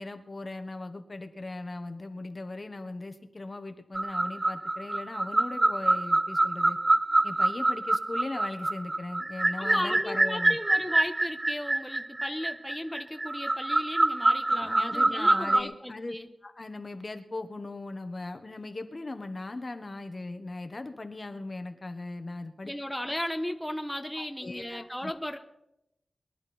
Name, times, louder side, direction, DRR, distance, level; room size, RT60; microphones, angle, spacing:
voice 1, 0.0-6.8 7.2-10.6 14.5-16.1 16.4-22.7 24.2-25.1, left 2 dB, 45° left, 8 dB, 1.4 m, -39 dB
sound 1, 3.9-15.6, right 2 dB, 30° right, 0.5 m, -26 dB
voice 2, 9.6-16.3 22.7-25.4, left 1 dB, 5° left, 5 dB, 1.1 m, -35 dB
22.5 x 11.5 x 4.4 m, 0.86 s
wide cardioid pair, 75°, 0 cm